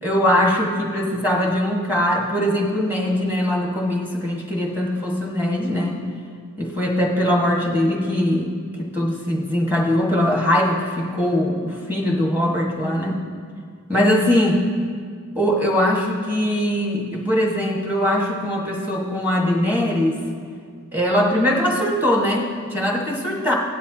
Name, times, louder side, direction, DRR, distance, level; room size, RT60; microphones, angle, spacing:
voice 1, 0.0-6.0 6.6-8.5 8.8-13.2 13.9-14.6 15.3-20.2 20.9-23.5, left 1 dB, 10° right, -2 dB, 1.4 m, -21 dB
17.0 x 11.5 x 2.8 m, 2.1 s
head